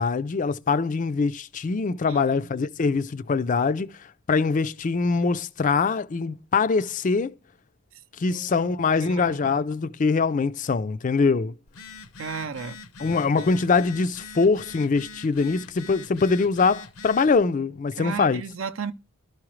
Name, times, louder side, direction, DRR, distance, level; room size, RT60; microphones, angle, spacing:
voice 1, 0.0-3.9 4.3-7.3 8.2-11.5 13.0-18.4, left 4 dB, 35° left, 0.4 m, -23 dB
voice 2, 2.1-2.5 2.8-2.9 8.3-8.5 9.0-9.4 12.2-12.8 13.4-13.5 18.0-18.9, right 5 dB, 65° right, 0.6 m, -34 dB
Telephone, 11.7-17.3, left 3 dB, 85° left, 0.8 m, -43 dB
12.0 x 4.8 x 3.1 m
head